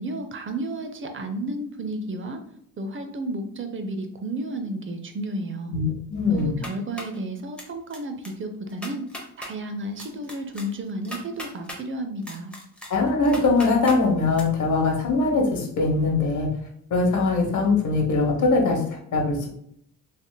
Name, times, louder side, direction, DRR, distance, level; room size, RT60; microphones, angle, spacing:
voice 1, 0.0-2.4 2.8-5.7 6.3-9.0 9.4-12.5, right 1 dB, 30° right, 6 dB, 0.5 m, -32 dB
voice 2, 5.7-6.6 12.9-16.5 16.9-19.5, left 3 dB, 45° left, 0 dB, 1.0 m, -22 dB
sound 1, 6.4-7.2 7.6-8.0 8.2-8.3 8.7-9.5 10.0-11.8 12.2-14.0 14.3-14.4, equal, 5° left, 0.9 m, -38 dB
3.4 x 2.7 x 2.2 m, 0.69 s
cardioid pair, 75°, 40 cm